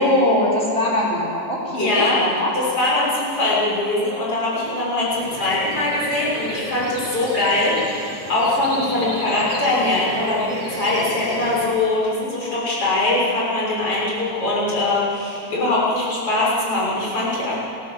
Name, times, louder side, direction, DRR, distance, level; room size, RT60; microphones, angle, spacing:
voice 1, 0.0-2.5, left 1 dB, 20° left, -5 dB, 4.3 m, -21 dB
voice 2, 1.8-2.2 2.5-17.6, left 2 dB, 45° left, -6 dB, 7.4 m, -22 dB
sound 1, 5.1-11.7, right 1 dB, 30° right, 4.6 m, -32 dB
29.5 x 14.0 x 7.7 m, 2.7 s
omnidirectional pair, 3.7 m